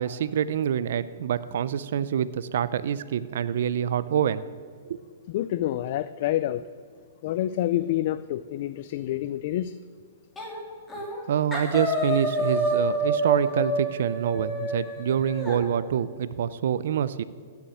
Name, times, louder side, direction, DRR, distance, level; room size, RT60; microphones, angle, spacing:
voice 1, 0.0-4.4 4.9-5.0 11.3-17.2, right 9 dB, 65° right, 0.5 m, -26 dB
voice 2, 5.3-6.6 7.2-9.7, left 13 dB, 50° left, 0.4 m, -27 dB
sound 1, 10.4-10.6 10.9-11.2 11.5-15.6, right 1 dB, 10° left, 3.0 m, -28 dB
15.5 x 7.2 x 7.8 m
hypercardioid pair, 150°, 0 cm